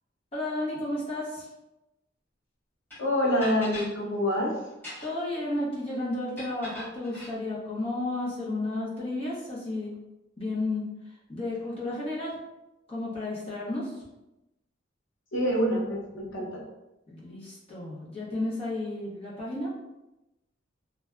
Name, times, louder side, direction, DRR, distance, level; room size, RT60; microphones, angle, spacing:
voice 1, 0.3-1.5 5.0-9.9 10.4-12.3 12.9-14.0 17.1-19.7, left 2 dB, 30° left, -6 dB, 0.7 m, -32 dB
sound 1, 2.9-3.0 3.4-3.9 4.7-5.3 6.4-7.3, left 1 dB, 10° left, 1.4 m, -40 dB
voice 2, 3.0-4.5 15.3-16.6, equal, 75° left, -2 dB, 0.6 m, -26 dB
2.6 x 2.2 x 2.3 m, 0.96 s
head